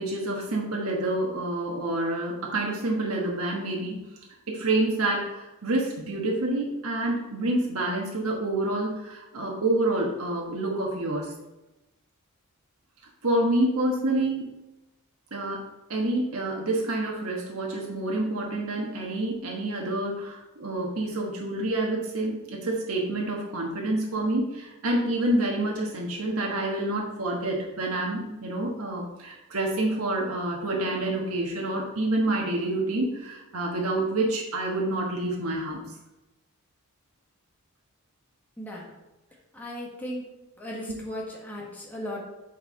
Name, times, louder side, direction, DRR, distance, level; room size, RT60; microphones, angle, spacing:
voice 1, 0.0-4.0 4.5-11.3 13.2-14.4 15.3-15.6 15.9-35.8, right 2 dB, 75° right, -1 dB, 1.3 m, -28 dB
voice 2, 38.6-38.9 39.5-40.2 40.6-42.2, equal, 10° left, -4 dB, 1.5 m, -36 dB
8.5 x 4.6 x 4.4 m, 1.0 s
head